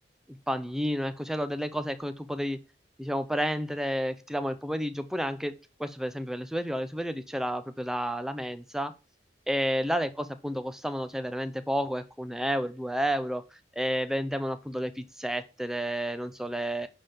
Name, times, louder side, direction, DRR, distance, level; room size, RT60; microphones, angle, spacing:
voice 1, 0.3-2.6 3.0-5.5 5.8-8.9 9.5-13.4 13.7-16.9, equal, 5° right, 10 dB, 0.7 m, -31 dB
11.0 x 3.8 x 7.0 m, 0.31 s
head